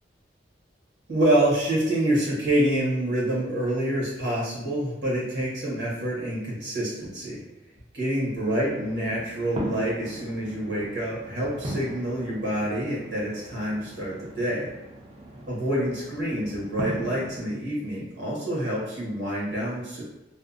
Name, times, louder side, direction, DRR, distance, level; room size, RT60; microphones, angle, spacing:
voice 1, 1.1-7.4 7.9-14.7 15.5-20.0, right 1 dB, 85° right, -6 dB, 0.9 m, -27 dB
sound 1, 8.5-17.4, right 1 dB, 30° right, 0.5 m, -39 dB
2.6 x 2.1 x 2.4 m, 0.91 s
head